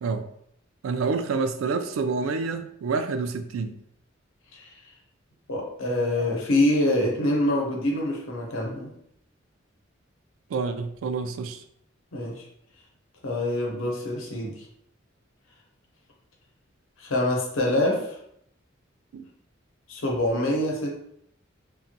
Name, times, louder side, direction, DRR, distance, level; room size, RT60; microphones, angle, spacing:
voice 1, 0.8-3.8 10.5-11.6 19.1-19.3, right 4 dB, 85° right, 9 dB, 0.3 m, -28 dB
voice 2, 5.5-8.9 12.1-12.4 13.2-14.6 17.0-18.2 19.9-21.0, left 1 dB, 85° left, -1 dB, 0.7 m, -25 dB
2.9 x 2.3 x 2.7 m, 0.71 s
head